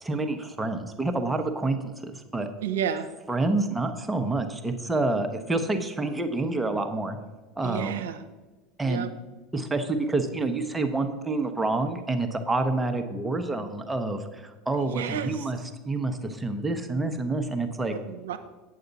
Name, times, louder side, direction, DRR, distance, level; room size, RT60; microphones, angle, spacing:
voice 1, 0.0-2.5 3.3-7.2 7.6-8.0 8.8-9.1 9.5-15.6 15.9-17.9, right 2 dB, 15° right, 6 dB, 0.9 m, -28 dB
voice 2, 2.6-3.1 7.6-8.2 8.8-9.1 14.9-15.5 17.9-18.4, right 9 dB, 85° right, 8 dB, 0.7 m, -31 dB
8.5 x 7.9 x 4.0 m, 1.2 s
hypercardioid pair, 90°, 0 cm